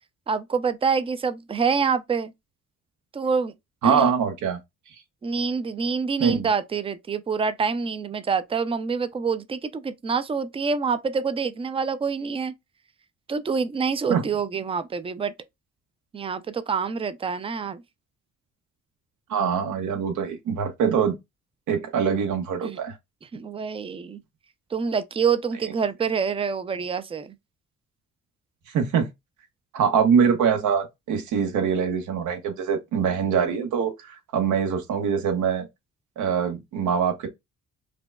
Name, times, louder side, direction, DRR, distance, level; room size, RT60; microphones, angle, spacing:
voice 1, 0.3-2.3 3.1-3.5 3.8-4.1 5.2-12.5 13.3-15.3 16.1-17.8 22.6-22.8 23.3-24.2 24.7-27.3, right 5 dB, 20° right, 0.4 m, -26 dB
voice 2, 3.8-4.6 6.2-6.5 14.1-14.2 19.3-21.1 21.7-22.9 28.7-29.1 29.7-35.7 36.2-37.3, right 7 dB, 80° right, 1.1 m, -23 dB
5.0 x 2.1 x 2.3 m
cardioid pair, 90°, 30 cm